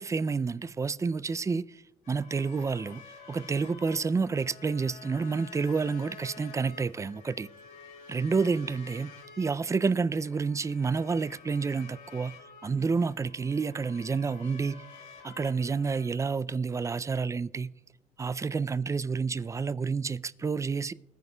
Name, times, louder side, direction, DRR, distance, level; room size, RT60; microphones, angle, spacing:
voice 1, 0.0-1.8 2.1-3.0 3.3-7.5 8.1-12.4 12.6-14.9 15.2-17.7 18.2-20.9, right 5 dB, 20° right, 0.3 m, -29 dB
sound 1, 2.0-16.1, left 5 dB, 85° left, 2.1 m, -51 dB
20.0 x 9.8 x 2.2 m
cardioid pair, 80°, 14 cm